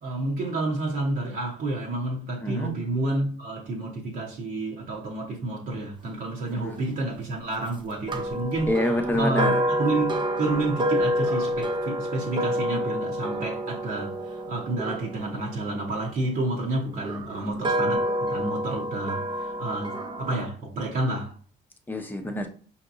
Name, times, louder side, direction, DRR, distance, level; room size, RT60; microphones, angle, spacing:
voice 1, 0.0-8.7 9.2-9.5 9.8-21.3, right 2 dB, 55° right, 1.0 m, -30 dB
voice 2, 2.4-2.7 6.5-6.8 8.7-9.6 21.9-22.5, left 1 dB, 10° left, 0.7 m, -27 dB
sound 1, 8.1-16.2 17.0-20.5, equal, 25° right, 0.7 m, -28 dB
5.1 x 2.8 x 2.6 m
cardioid pair, 110°, 17 cm